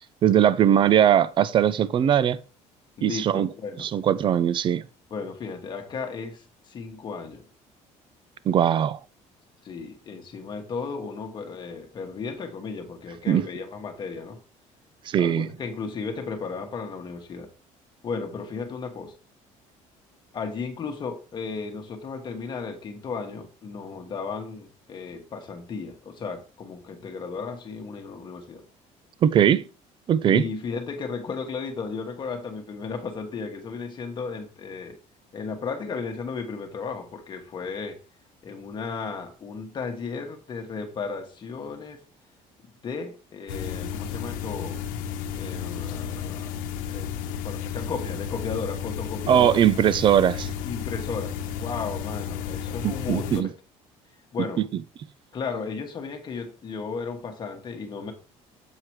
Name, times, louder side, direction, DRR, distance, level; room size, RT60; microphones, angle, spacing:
voice 1, 0.2-2.4 3.0-3.5 3.8-4.8 8.5-9.0 13.3-13.4 15.1-15.5 29.2-29.6 30.1-30.4 49.3-50.5 52.8-53.5, right 10 dB, 35° right, 0.5 m, -20 dB
voice 2, 3.0-3.9 5.1-7.4 9.6-14.4 15.2-17.5 18.0-19.2 20.3-28.6 30.3-35.0 35.3-38.0 38.4-42.0 42.6-44.8 45.3-46.5 46.9-49.6 50.6-53.5 54.3-54.6 55.3-58.1, left 5 dB, 35° left, 1.3 m, -34 dB
sound 1, 43.5-53.4, left 8 dB, 80° left, 1.0 m, -33 dB
7.5 x 4.8 x 4.6 m
cardioid pair, 145°, 14 cm